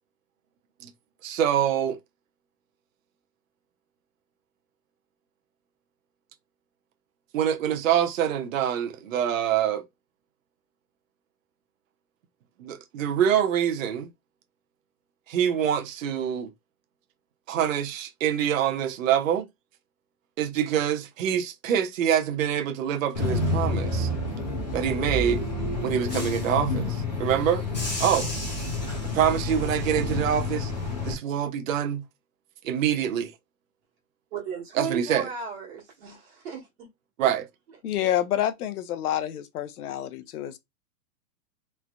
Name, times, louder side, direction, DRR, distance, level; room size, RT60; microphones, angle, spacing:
voice 1, 1.2-2.0 7.3-9.8 12.6-14.1 15.3-16.5 17.5-19.5 20.4-24.1 24.7-25.4 25.8-27.6 28.0-28.3 29.1-30.7 31.0-32.0 32.6-33.3 34.7-35.3 37.2-37.5, right 9 dB, 55° right, 0.6 m, -25 dB
Bus / Engine, 23.1-31.1, left 2 dB, 30° left, 0.4 m, -29 dB
voice 2, 34.3-36.9 37.2-37.3, right 5 dB, 40° right, 1.4 m, -35 dB
voice 3, 37.8-40.6, left 11 dB, 65° left, 0.6 m, -28 dB
3.2 x 2.5 x 2.2 m
supercardioid pair, 175°, 48 cm